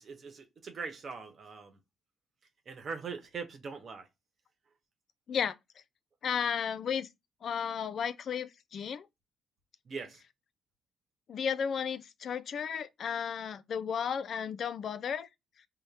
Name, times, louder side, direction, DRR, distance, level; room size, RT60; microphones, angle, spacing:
voice 1, 0.0-1.8 2.7-4.1 9.8-10.2, right 5 dB, 50° right, 1.0 m, -41 dB
voice 2, 6.2-7.1 7.4-9.1 11.3-15.3, left 7 dB, 60° left, 0.3 m, -33 dB
4.0 x 2.1 x 3.3 m
cardioid pair, 90°, 0 cm